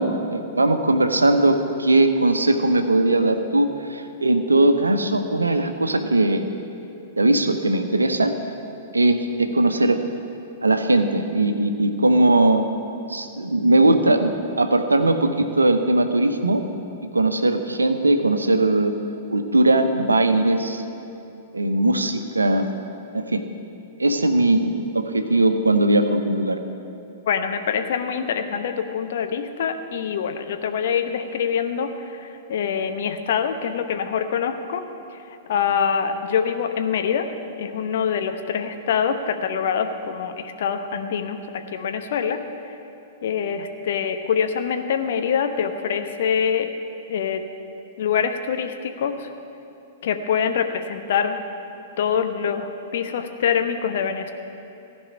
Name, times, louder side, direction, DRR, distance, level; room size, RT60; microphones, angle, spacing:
voice 1, 0.0-6.5 7.2-8.3 8.9-10.1 10.6-12.7 13.1-16.6 17.0-19.0 19.3-20.8 21.5-22.7 23.1-23.4 24.0-26.6, right 2 dB, 80° right, 7 dB, 0.9 m, -19 dB
voice 2, 27.3-34.8 35.5-37.3 37.6-41.4 41.7-42.4 43.2-46.7 47.1-47.4 48.0-49.3 50.0-51.4 52.0-54.3, left 7 dB, 55° left, 7 dB, 0.9 m, -24 dB
15.5 x 5.4 x 9.9 m, 2.8 s
figure-of-eight pair, 105°, 0 cm